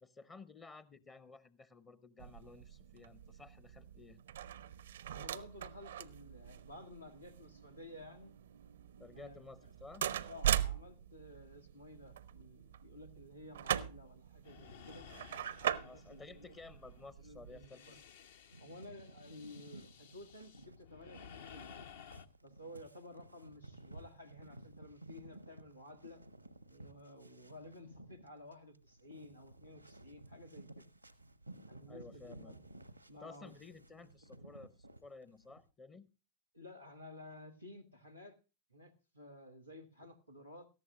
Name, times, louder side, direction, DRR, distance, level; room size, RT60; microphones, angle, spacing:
voice 1, 0.0-4.2 9.0-10.1 15.8-18.0 31.9-32.5 33.2-36.1, left 4 dB, 20° left, 17 dB, 0.7 m, -54 dB
sound 1, 2.2-17.6, right 10 dB, 65° right, 0.5 m, -41 dB
voice 2, 5.1-8.3 9.1-9.4 10.2-15.1 15.6-16.5 17.2-18.0 18.6-21.9 22.4-26.2 26.7-30.9 31.7-32.6 33.1-33.5 34.0-34.1 34.4-34.6 36.5-38.4 38.7-40.7, left 1 dB, 90° left, 5 dB, 1.6 m, -54 dB
sound 2, 14.4-22.3, left 7 dB, 60° left, 0.7 m, -56 dB
sound 3, 18.5-35.6, right 2 dB, 90° right, 0.8 m, -56 dB
18.0 x 14.0 x 2.4 m, 0.30 s
figure-of-eight pair, 90°, 0 cm